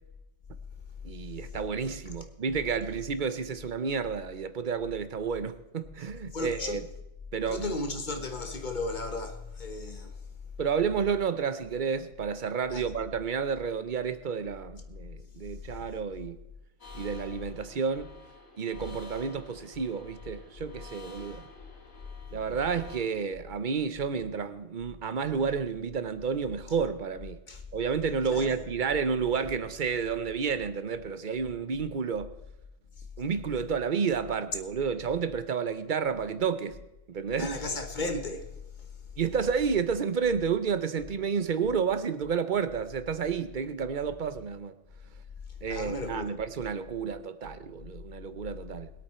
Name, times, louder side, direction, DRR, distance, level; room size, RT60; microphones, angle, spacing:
voice 1, 1.0-6.9 7.3-7.7 10.6-16.4 16.9-18.1 18.6-21.5 22.3-27.4 27.7-32.3 33.2-37.6 39.2-44.7 45.6-48.9, right 6 dB, 45° right, 0.8 m, -30 dB
voice 2, 6.3-6.8 7.5-10.2 12.7-12.8 27.5-27.6 28.3-28.5 37.4-38.5 45.7-46.3, left 2 dB, 40° left, 1.3 m, -34 dB
sound 1, 16.8-23.0, left 2 dB, 75° left, 2.5 m, -51 dB
21.5 x 8.6 x 4.3 m
omnidirectional pair, 1.4 m